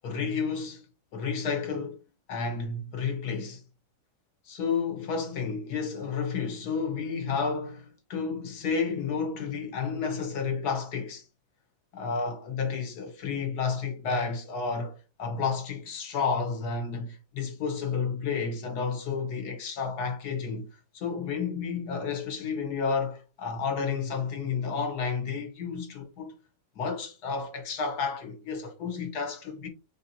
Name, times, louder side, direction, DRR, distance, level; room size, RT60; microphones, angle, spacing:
voice 1, 0.0-0.8 1.1-1.9 2.3-3.6 4.5-11.2 11.9-20.7 20.9-26.3 26.8-29.7, left 5 dB, 75° left, 1.4 m, -31 dB
4.4 x 2.6 x 2.8 m
omnidirectional pair, 1.7 m